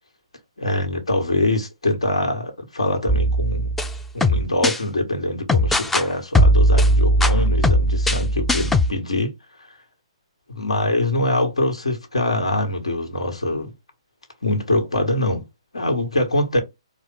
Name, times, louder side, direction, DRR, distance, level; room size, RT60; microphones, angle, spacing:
voice 1, 0.6-3.7 4.1-9.3 10.5-13.7 14.4-15.4 15.7-16.6, left 1 dB, 85° left, 1.9 m, -23 dB
sound 1, 3.1-4.8 5.5-6.0 6.3-8.9, equal, 5° left, 0.4 m, -18 dB
4.4 x 2.5 x 3.8 m
hypercardioid pair, 140°, 3 cm